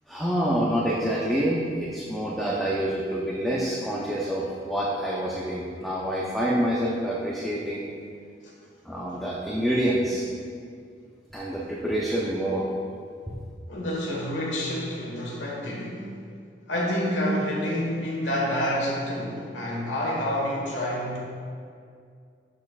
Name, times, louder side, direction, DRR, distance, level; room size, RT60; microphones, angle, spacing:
voice 1, 0.1-7.8 8.9-10.2 11.3-12.7, equal, ahead, -5 dB, 0.7 m, -27 dB
voice 2, 13.7-16.0 16.7-21.2, equal, 85° left, -4 dB, 1.4 m, -28 dB
12.0 x 5.4 x 2.4 m, 2.3 s
head